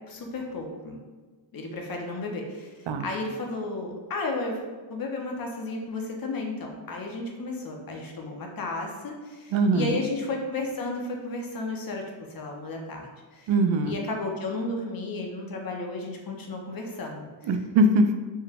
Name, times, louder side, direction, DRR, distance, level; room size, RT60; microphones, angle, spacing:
voice 1, 0.1-1.0 1.5-13.5 13.8-17.3, left 2 dB, 50° left, 1 dB, 0.6 m, -33 dB
voice 2, 9.5-10.0 13.5-13.9 17.4-18.1, right 2 dB, 70° right, 7 dB, 0.5 m, -22 dB
4.5 x 2.1 x 3.4 m, 1.4 s
wide cardioid pair, 145°, 46 cm